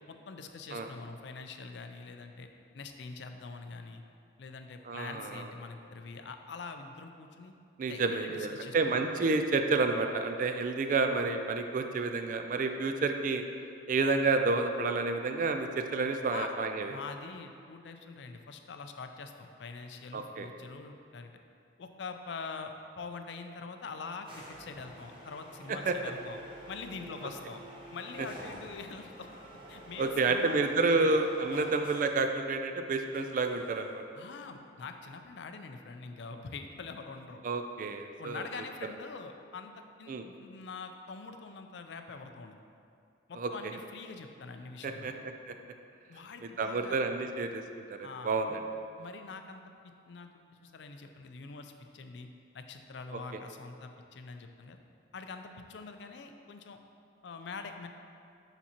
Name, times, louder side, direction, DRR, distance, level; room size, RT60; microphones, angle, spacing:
voice 1, 0.1-2.5 2.7-4.0 4.4-7.5 7.9-9.1 16.3-16.5 16.8-21.3 21.8-26.4 26.7-27.6 27.9-29.3 29.7-31.2 31.5-31.7 34.1-37.4 38.2-39.7 40.0-42.6 43.3-45.2 46.1-47.0 48.0-48.6 49.0-52.3 52.5-54.8 55.1-56.8 57.2-57.9, left 4 dB, 70° left, 6 dB, 0.4 m, -44 dB
voice 2, 4.9-5.5 7.8-13.4 13.9-16.9 20.1-20.5 25.9-26.0 30.0-34.0 37.4-38.5 40.1-40.2 43.4-43.5 44.8-45.1 45.5-45.6 46.6-48.6, right 3 dB, 45° right, 6 dB, 0.3 m, -30 dB
sound 1, 24.2-32.3 33.1-34.0, equal, 30° right, 0.9 m, -49 dB
6.9 x 6.0 x 2.9 m, 2.4 s
head